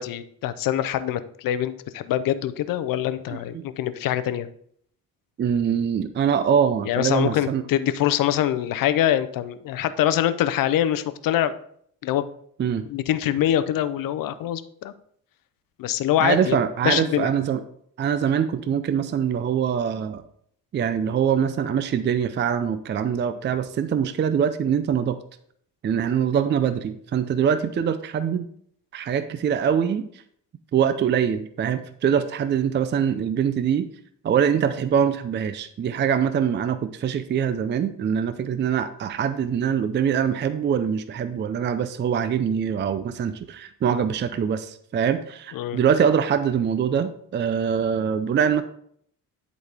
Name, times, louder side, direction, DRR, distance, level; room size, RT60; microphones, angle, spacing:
voice 1, 0.0-4.5 6.9-11.5 12.0-12.3 12.9-14.9 15.8-16.6 16.8-17.3 45.5-45.8, left 11 dB, 75° left, 13 dB, 0.6 m, -24 dB
voice 2, 3.3-3.6 5.4-7.6 12.6-12.8 16.2-17.6 18.0-20.2 20.7-25.2 25.8-28.5 28.9-30.1 30.7-33.9 34.2-48.6, right 8 dB, 35° right, 11 dB, 0.4 m, -23 dB
10.5 x 4.1 x 3.4 m, 0.66 s
cardioid pair, 100°, 34 cm